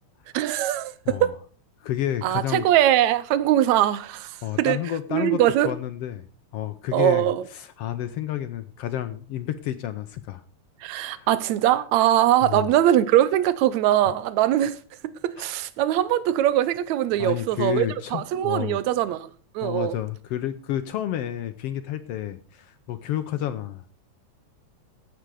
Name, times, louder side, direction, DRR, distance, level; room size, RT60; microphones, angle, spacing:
voice 1, 0.3-1.3 2.2-4.8 5.1-5.7 6.9-7.4 10.8-14.8 15.0-19.3 19.5-20.0, right 12 dB, 75° right, 2.1 m, -22 dB
voice 2, 1.8-2.6 4.4-6.2 6.5-7.3 7.5-10.4 11.0-11.3 12.4-12.7 17.2-18.8 19.6-23.8, left 11 dB, 70° left, 1.5 m, -30 dB
14.5 x 8.9 x 4.8 m
omnidirectional pair, 3.4 m